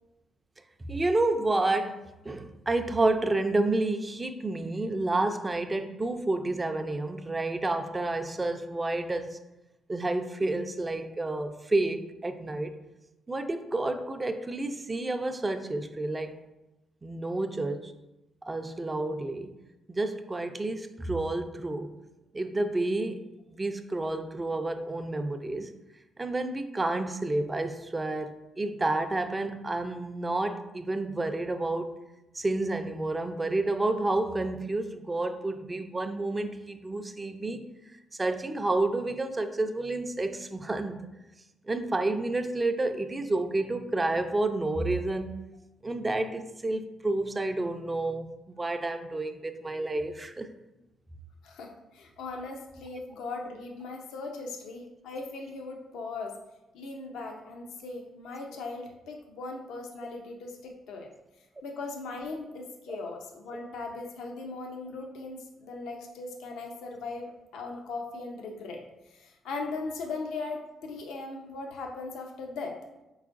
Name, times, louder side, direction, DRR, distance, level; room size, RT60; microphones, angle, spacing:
voice 1, 0.9-2.0 2.3-9.4 9.9-12.7 13.3-16.3 17.0-17.9 18.5-19.5 19.9-21.9 22.3-23.2 23.6-25.7 26.2-31.9 32.3-37.7 38.2-41.1 41.7-45.5 45.8-50.5 62.9-63.0, right 2 dB, 20° right, 8 dB, 0.4 m, -30 dB
voice 2, 51.4-56.3 56.7-61.1 61.6-68.8 69.1-72.8, left 3 dB, 85° left, 2 dB, 0.6 m, -39 dB
4.7 x 4.4 x 2.5 m, 0.98 s
cardioid pair, 90°, 0 cm